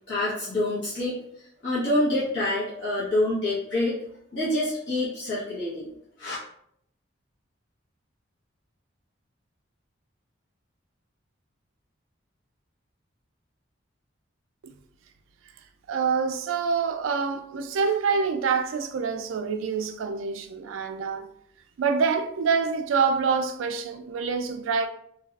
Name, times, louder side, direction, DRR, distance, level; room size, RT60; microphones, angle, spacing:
voice 1, 0.1-1.1 1.6-4.0 4.3-5.9 6.2-6.3, left 1 dB, 65° left, 0.9 m, -26 dB
voice 2, 15.9-21.3 21.8-24.9, right 5 dB, 85° right, 0.3 m, -26 dB
3.3 x 2.3 x 2.3 m
head